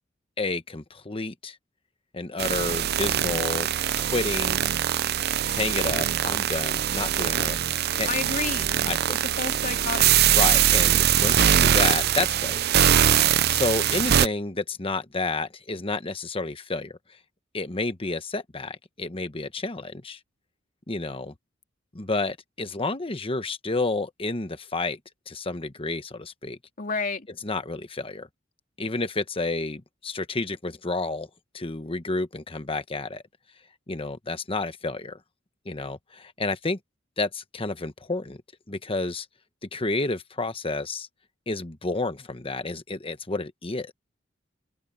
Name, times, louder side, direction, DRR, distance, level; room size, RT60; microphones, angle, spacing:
voice 1, 0.4-1.6 2.1-3.7 4.0-4.6 5.4-7.6 7.9-8.1 8.9-9.0 10.3-12.7 13.5-16.9 17.5-20.2 20.9-21.3 21.9-25.0 25.3-26.6 27.4-28.3 28.8-31.3 31.5-33.2 33.9-35.2 35.6-36.8 37.2-38.4 38.7-39.3 39.7-41.1 41.5-43.9, left 3 dB, 30° left, 1.2 m, -30 dB
sound 1, 2.4-14.3, right 10 dB, 55° right, 0.5 m, -22 dB
voice 2, 8.1-8.7 9.4-10.2 26.8-27.3, left 4 dB, 45° left, 2.8 m, -30 dB
open air
head